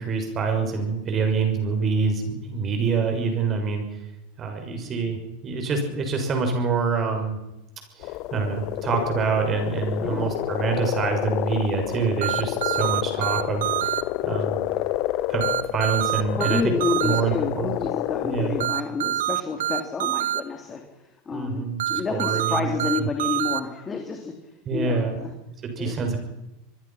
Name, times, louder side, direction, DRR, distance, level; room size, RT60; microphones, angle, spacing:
voice 1, 0.0-3.8 4.4-7.4 8.0-13.6 14.2-14.6 15.3-16.6 17.0-17.7 18.2-18.6 21.3-22.8 24.6-25.2 25.6-26.2, right 5 dB, 35° right, 4 dB, 6.7 m, -26 dB
voice 2, 4.7-5.0 10.0-10.3 16.4-25.3 25.8-26.0, left 5 dB, 20° left, 4 dB, 3.5 m, -30 dB
sound 1, 8.0-18.7, left 15 dB, 50° left, 1.1 m, -29 dB
sound 2, 12.2-14.0 15.4-17.2 18.6-20.4 21.8-23.6, right 12 dB, 70° right, 1.2 m, -25 dB
24.5 x 22.5 x 5.9 m, 0.97 s
hypercardioid pair, 90°, 0 cm